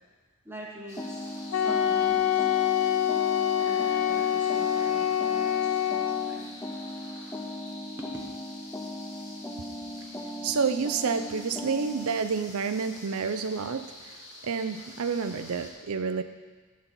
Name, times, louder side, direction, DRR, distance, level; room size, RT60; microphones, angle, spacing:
voice 1, 0.4-1.2 1.5-2.4 3.6-5.8 6.1-6.5 8.0-8.1, right 1 dB, 10° right, -2 dB, 1.2 m, -45 dB
sound 1, 0.9-15.7, left 2 dB, 50° left, 2.6 m, -47 dB
sound 2, 1.0-12.3, equal, 10° left, 0.5 m, -38 dB
Wind instrument woodwind instrument, 1.5-6.4, left 10 dB, 90° left, 0.5 m, -26 dB
voice 2, 10.4-14.2 14.4-16.2, right 5 dB, 80° right, 10 dB, 0.5 m, -29 dB
12.5 x 4.2 x 6.0 m, 1.4 s
head